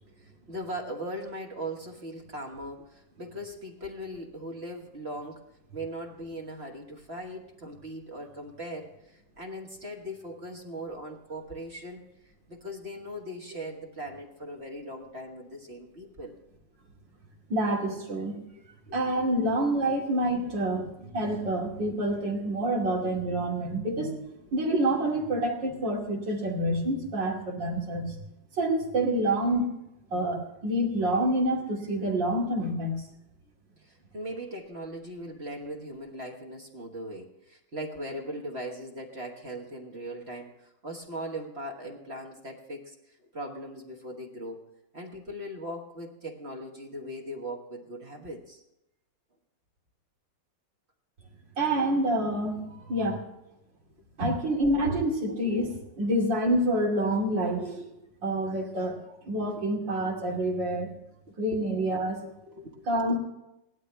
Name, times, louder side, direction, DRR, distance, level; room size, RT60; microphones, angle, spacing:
voice 1, 0.2-5.4 5.7-16.4 18.9-19.0 20.8-20.9 33.8-48.6 61.5-61.6 62.2-63.2, equal, 40° right, 0 dB, 1.6 m, -39 dB
voice 2, 17.5-18.4 18.9-20.8 21.1-24.2 24.5-28.2 28.6-29.7 30.1-33.0 51.6-53.2 54.2-57.9 58.2-59.0 59.2-60.9 61.4-62.2 62.9-63.2, right 1 dB, 85° right, -1 dB, 3.3 m, -27 dB
17.5 x 12.0 x 3.4 m, 0.89 s
omnidirectional pair, 1.9 m